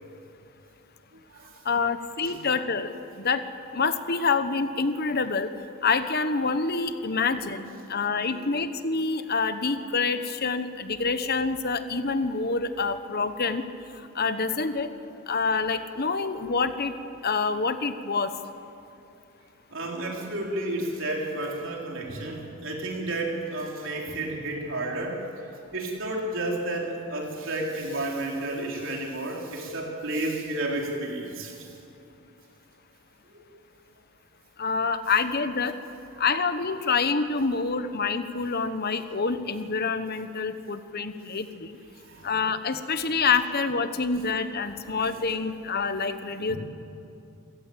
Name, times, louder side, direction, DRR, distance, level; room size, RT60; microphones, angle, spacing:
voice 1, 1.6-3.4 3.7-5.5 5.8-13.7 14.1-14.9 15.3-16.9 17.2-18.3 34.6-35.7 36.2-41.8 42.2-46.6, left 4 dB, 50° left, 10 dB, 1.2 m, -27 dB
voice 2, 8.2-8.6 19.7-31.7 33.3-33.4 36.1-36.2 42.0-42.4 44.7-45.2 46.4-46.6, right 1 dB, 65° right, -1 dB, 3.8 m, -32 dB
26.5 x 16.5 x 8.7 m, 2.7 s
head